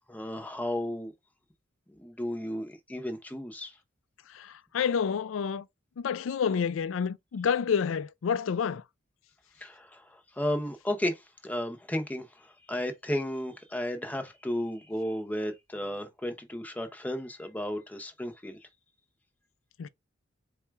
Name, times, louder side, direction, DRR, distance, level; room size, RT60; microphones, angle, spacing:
voice 1, 0.1-1.1 2.0-3.7 9.6-18.6, left 1 dB, 10° left, 0.7 m, -34 dB
voice 2, 4.3-5.7 6.0-8.8 19.8-19.9, left 7 dB, 75° left, 0.4 m, -29 dB
4.2 x 2.3 x 4.5 m
head